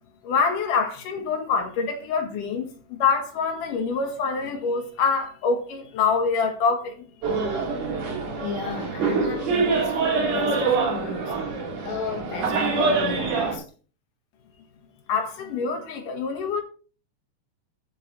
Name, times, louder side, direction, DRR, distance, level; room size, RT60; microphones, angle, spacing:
voice 1, 0.2-7.0 15.1-16.6, left 5 dB, 85° left, 3.1 m, -25 dB
sound 1, 7.2-13.6, right 4 dB, 70° right, 4.2 m, -25 dB
voice 2, 8.4-11.4 11.9-13.6, left 4 dB, 65° left, 3.1 m, -34 dB
13.0 x 6.7 x 4.1 m
omnidirectional pair, 3.7 m